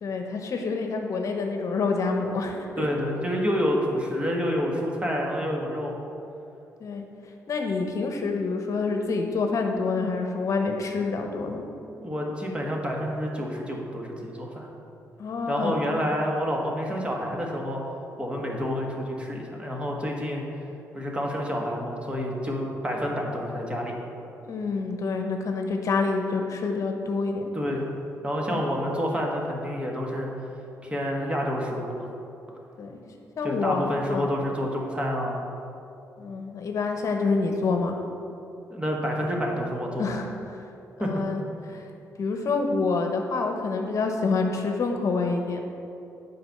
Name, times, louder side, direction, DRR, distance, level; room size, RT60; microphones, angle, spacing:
voice 1, 0.0-2.9 6.8-7.0 7.5-11.6 15.2-15.8 24.4-27.5 28.5-28.6 32.8-32.9 33.4-34.3 36.2-37.9 40.0-40.3 41.0-41.4 41.7-41.8 42.2-45.6, left 4 dB, 60° left, 3 dB, 0.9 m, -27 dB
voice 2, 2.8-5.9 12.0-14.7 15.5-17.8 18.2-20.4 20.9-23.9 27.5-27.8 28.2-30.3 30.8-32.1 33.4-35.4 38.7-40.1 41.0-41.1, equal, 20° right, -1 dB, 1.5 m, -28 dB
7.9 x 5.1 x 6.5 m, 2.7 s
cardioid pair, 85°, 6 cm